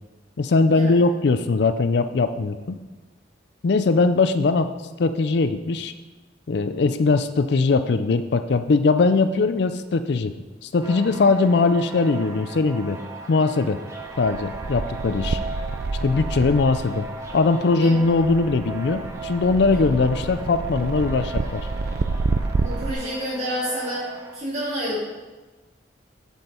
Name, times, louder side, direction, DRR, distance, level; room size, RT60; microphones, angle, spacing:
voice 1, 0.4-2.8 3.6-4.7 5.0-5.9 6.5-10.3 10.6-13.0 13.3-13.8 14.2-15.4 16.0-17.1 17.3-21.7, left 3 dB, 60° left, 10 dB, 0.4 m, -20 dB
sound 1, 10.8-24.4, right 2 dB, 15° right, 0.8 m, -37 dB
sound 2, 14.1-22.9, right 3 dB, 55° right, 0.4 m, -29 dB
voice 2, 22.6-24.1 24.3-25.0, equal, 35° right, -6 dB, 3.1 m, -28 dB
7.7 x 7.2 x 4.4 m, 1.2 s
head